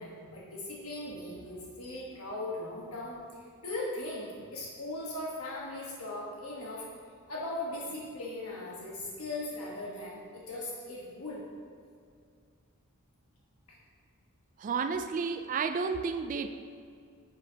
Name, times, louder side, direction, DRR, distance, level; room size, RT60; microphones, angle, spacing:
voice 1, 0.0-6.8 7.3-11.4 13.7-13.8, left 2 dB, 70° left, -4 dB, 1.3 m, -39 dB
voice 2, 14.6-16.5, right 5 dB, 35° right, 9 dB, 0.3 m, -31 dB
10.5 x 7.1 x 2.8 m, 2.2 s
head